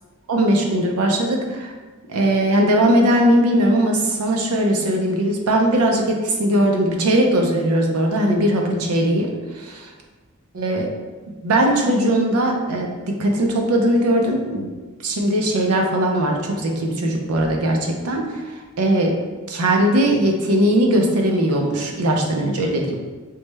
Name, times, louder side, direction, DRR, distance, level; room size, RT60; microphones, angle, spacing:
voice 1, 0.3-1.7 2.1-9.3 10.5-10.9 11.4-12.9 13.2-14.7 15.0-18.4 18.8-19.2 19.5-23.0, right 1 dB, 75° right, 1 dB, 0.5 m, -19 dB
3.2 x 2.1 x 3.2 m, 1.3 s
head